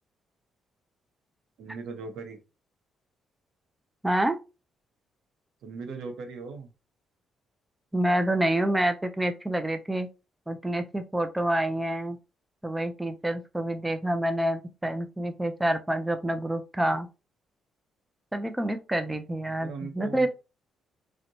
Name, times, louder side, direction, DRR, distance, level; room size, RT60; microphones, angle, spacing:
voice 1, 1.6-2.4 5.6-6.7 19.5-20.3, right 4 dB, 80° right, 0.7 m, -38 dB
voice 2, 4.0-4.4 7.9-10.1 10.5-12.2 12.6-17.1 18.3-20.3, right 1 dB, 10° right, 0.3 m, -27 dB
2.7 x 2.1 x 2.6 m
cardioid pair, 90°, 0 cm